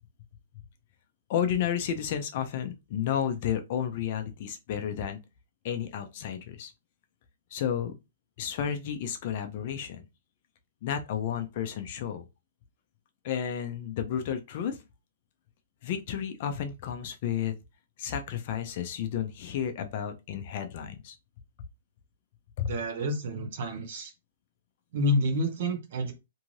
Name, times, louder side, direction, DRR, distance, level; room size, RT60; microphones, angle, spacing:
voice 1, 1.3-5.2 5.6-6.7 7.5-7.9 8.4-10.0 10.8-12.2 13.2-14.8 15.8-17.5 18.0-21.2 22.6-22.8, left 9 dB, 40° left, 0.4 m, -32 dB
voice 2, 22.7-24.1 24.9-26.1, left 1 dB, 45° right, 0.8 m, -29 dB
2.6 x 2.5 x 3.0 m
hypercardioid pair, 170°, 0 cm